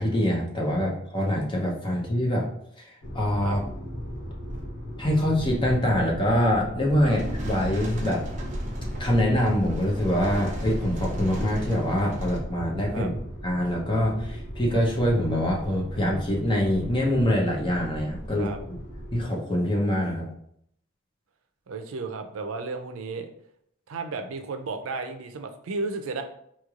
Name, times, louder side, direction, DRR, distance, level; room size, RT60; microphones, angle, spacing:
voice 1, 0.0-2.5 2.8-3.6 5.0-8.2 9.0-13.1 13.4-18.5 19.1-20.3, equal, 25° left, -2 dB, 0.7 m, -24 dB
sound 1, 3.0-19.2, equal, 65° left, 1.0 m, -37 dB
sound 2, 7.1-12.4, equal, 35° right, 0.6 m, -34 dB
voice 2, 21.7-23.3 23.9-26.2, right 3 dB, 85° right, 6 dB, 0.4 m, -33 dB
4.3 x 3.1 x 2.4 m, 0.71 s
head